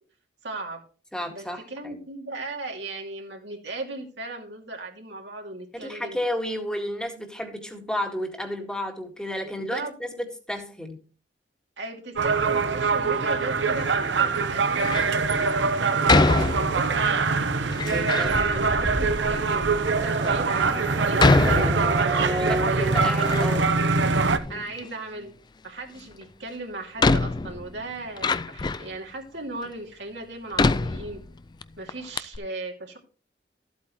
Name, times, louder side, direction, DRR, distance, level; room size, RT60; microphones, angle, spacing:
voice 1, 0.4-0.8 1.3-6.2 9.4-9.9 11.8-17.8 18.2-23.3 23.5-23.6 24.5-25.3 25.6-31.2 31.8-33.0, right 2 dB, 75° right, 2.6 m, -37 dB
voice 2, 1.1-2.0 5.7-11.0 17.9-18.3 22.3-23.7, left 1 dB, 5° left, 1.9 m, -32 dB
sound 1, 12.2-24.4, right 4 dB, 90° right, 0.9 m, -23 dB
Door, 14.7-15.2 16.1-17.0 17.7-18.3 19.1-19.2 19.9-20.0 21.2-22.3 22.7-23.7 24.0-24.9 26.2-26.3 27.0-29.0 29.6-29.7 30.5-31.6 31.9-32.0 32.2-32.4, left 3 dB, 25° left, 0.4 m, -24 dB
Race car auto racing / Accelerating revving vroom, 18.2-23.5, right 2 dB, 20° right, 0.6 m, -32 dB
14.0 x 8.3 x 3.1 m
head